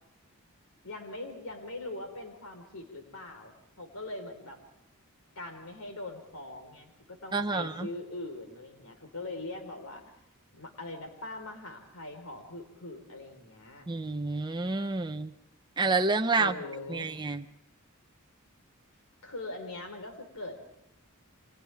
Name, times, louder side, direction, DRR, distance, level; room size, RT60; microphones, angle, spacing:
voice 1, 0.8-4.6 5.3-10.0 10.5-13.9 16.3-17.1 19.2-20.7, left 2 dB, 70° left, 4 dB, 4.6 m, -42 dB
voice 2, 7.3-7.9 13.9-15.3 15.8-16.6 16.9-17.4, right 3 dB, 20° right, 5 dB, 0.7 m, -29 dB
30.0 x 25.0 x 3.6 m, 0.86 s
head